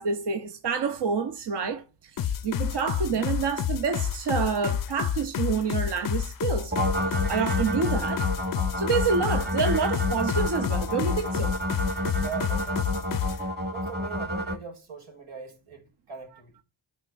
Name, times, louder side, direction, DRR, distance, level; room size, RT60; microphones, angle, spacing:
voice 1, 0.0-6.7 7.1-8.3 8.8-11.5, right 5 dB, 55° right, 0.9 m, -28 dB
sound 1, 2.2-13.4, left 9 dB, 45° left, 0.5 m, -29 dB
sound 2, 6.7-14.6, equal, 20° right, 1.3 m, -30 dB
voice 2, 12.2-13.3 13.6-16.6, right 5 dB, 85° right, 2.2 m, -41 dB
11.0 x 4.1 x 2.5 m
cardioid pair, 50°, 48 cm